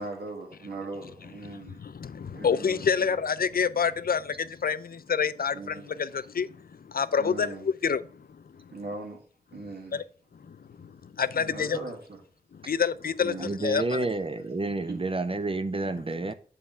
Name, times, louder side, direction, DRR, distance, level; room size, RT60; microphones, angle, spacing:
voice 1, 0.0-1.8 2.3-3.2 5.5-6.1 7.2-7.7 8.7-9.2 9.5-10.0 11.3-12.2 13.2-13.5 14.8-15.2, right 3 dB, 80° right, 1.7 m, -39 dB
voice 2, 1.5-8.7 9.9-10.0 10.4-11.8 12.5-14.1 16.2-16.3, left 6 dB, 65° left, 0.4 m, -28 dB
voice 3, 13.4-16.3, right 2 dB, 35° right, 0.5 m, -30 dB
7.5 x 3.4 x 5.5 m
wide cardioid pair, 75°, 16 cm